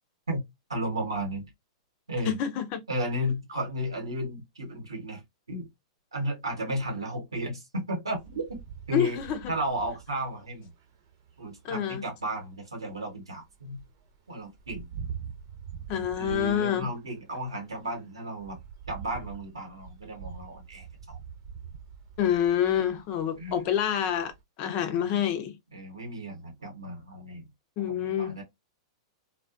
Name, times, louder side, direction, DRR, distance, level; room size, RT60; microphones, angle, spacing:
voice 1, 0.7-1.5 2.1-2.4 2.9-5.2 5.5-5.7 6.1-8.6 8.9-9.2 9.5-10.7 11.4-13.8 14.3-14.9 16.1-18.6 18.9-21.2 23.4-23.6 24.7-25.2 25.7-27.5 27.8-28.4, right 1 dB, 90° right, 1.2 m, -34 dB
voice 2, 2.3-2.8 8.9-9.4 11.6-12.0 15.9-16.9 22.2-24.3 24.6-25.6 27.8-28.4, left 9 dB, 45° left, 0.6 m, -27 dB
sound 1, 8.1-13.1 13.4-24.4, right 7 dB, 55° right, 0.9 m, -45 dB
2.3 x 2.3 x 2.4 m
hypercardioid pair, 105°, 3 cm